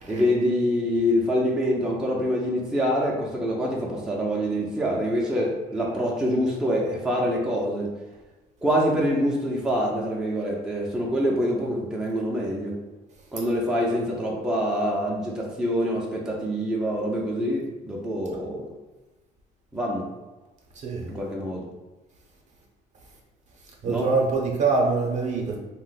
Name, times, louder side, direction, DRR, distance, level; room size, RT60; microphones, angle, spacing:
voice 1, 0.1-7.9 8.6-12.7 13.3-18.7 19.7-20.1 21.1-21.6 23.9-24.1, equal, 5° right, -4 dB, 0.5 m, -25 dB
voice 2, 20.7-21.1 23.8-25.6, right 4 dB, 45° right, -1 dB, 0.7 m, -24 dB
2.5 x 2.1 x 3.9 m, 1.1 s
cardioid pair, 110°, 17 cm